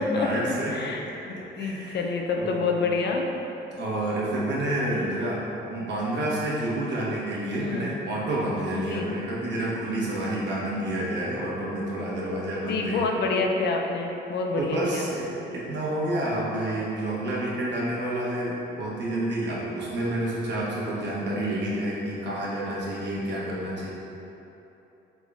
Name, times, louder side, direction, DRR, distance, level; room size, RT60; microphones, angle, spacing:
voice 1, 0.0-0.9 1.6-2.0 2.4-2.7 3.8-5.4 5.7-13.1 14.6-23.9, right 1 dB, 60° right, -6 dB, 1.2 m, -29 dB
voice 2, 0.7-3.2 7.6-8.0 8.7-9.1 12.7-15.1, left 4 dB, 60° left, 1 dB, 0.5 m, -28 dB
3.7 x 3.7 x 3.5 m, 3.0 s
cardioid pair, 90°, 20 cm